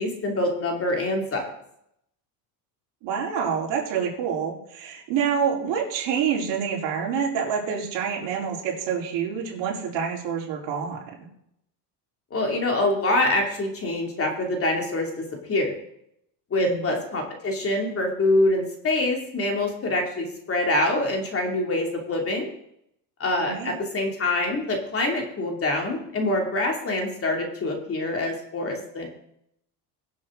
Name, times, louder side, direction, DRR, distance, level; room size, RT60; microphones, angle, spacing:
voice 1, 0.0-1.4 12.3-15.1 15.5-15.7 16.5-22.5 23.2-29.1, left 2 dB, 30° left, 1 dB, 2.9 m, -25 dB
voice 2, 3.0-11.0 16.6-16.9 23.4-23.8, right 7 dB, 60° right, -2 dB, 4.2 m, -27 dB
22.5 x 7.6 x 3.9 m, 0.75 s
cardioid pair, 125°, 47 cm